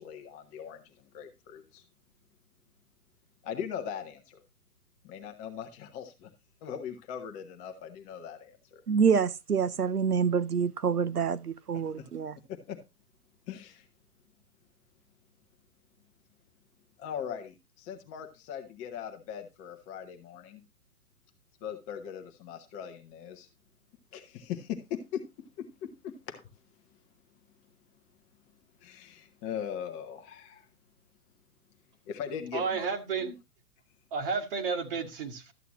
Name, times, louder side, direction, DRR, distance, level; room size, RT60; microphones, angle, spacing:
voice 1, 0.0-1.8 3.4-4.4 5.0-6.3 6.6-8.8 11.7-12.1 12.5-12.8 13.5-13.9 17.0-20.6 21.6-23.5 24.1-25.2 25.6-26.4 28.8-30.7 32.1-32.9 33.2-33.3, left 8 dB, 15° left, 0.9 m, -40 dB
voice 2, 8.9-12.3, right 6 dB, 80° right, 0.7 m, -27 dB
voice 3, 32.5-33.3 34.1-35.5, right 5 dB, 35° right, 1.9 m, -31 dB
13.0 x 8.1 x 3.0 m
figure-of-eight pair, 125°, 45 cm